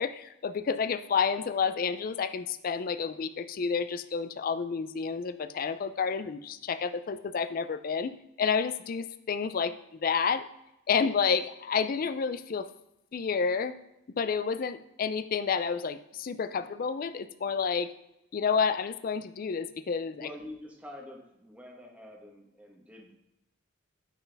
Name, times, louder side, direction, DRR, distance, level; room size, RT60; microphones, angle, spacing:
voice 1, 0.0-8.1 8.4-9.7 10.0-10.4 10.9-12.7 13.1-13.8 14.2-17.9 18.3-20.3, left 6 dB, 45° left, 11 dB, 0.4 m, -30 dB
voice 2, 20.2-23.1, left 1 dB, 5° right, 0 dB, 1.1 m, -46 dB
8.9 x 4.5 x 3.4 m, 0.87 s
head